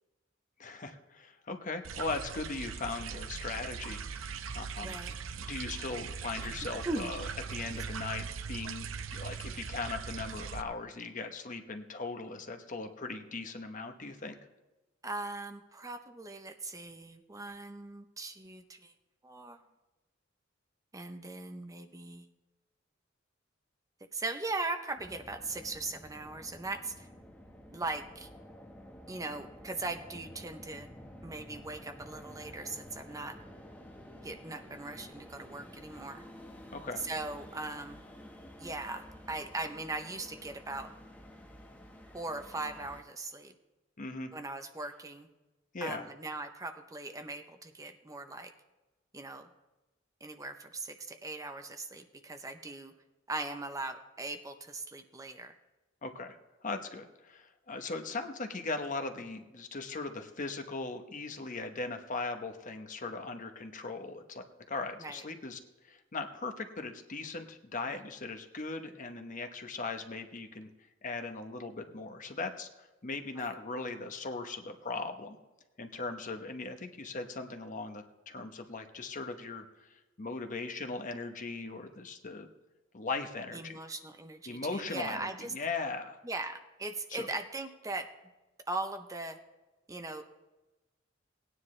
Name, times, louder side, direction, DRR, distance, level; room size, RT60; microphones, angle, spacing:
voice 1, 0.6-5.0 5.4-14.4 36.7-37.0 44.0-44.3 45.7-46.1 56.0-56.4 56.6-65.6 65.8-70.7 71.0-75.4 75.8-82.5 82.9-83.8 84.5-86.2 87.1-87.3, left 3 dB, 40° left, 6 dB, 0.9 m, -39 dB
sound 1, 1.8-10.6, right 6 dB, 80° right, 0.6 m, -40 dB
voice 2, 4.8-5.2 6.8-7.1 8.0-8.1 15.0-18.9 19.2-19.6 20.9-22.3 24.1-27.1 27.7-28.3 29.1-30.9 31.2-33.4 34.2-36.2 37.0-38.0 38.6-40.9 42.1-43.5 44.3-45.3 45.8-48.5 49.1-49.5 50.2-52.9 53.3-55.6 65.0-65.2 67.9-68.0 73.4-73.5 83.5-85.5 86.2-88.1 88.7-89.4 89.9-90.2, right 2 dB, 15° right, 7 dB, 0.6 m, -39 dB
sound 2, 25.0-43.0, equal, 10° left, 1.3 m, -51 dB
18.0 x 9.8 x 3.2 m, 1.1 s
head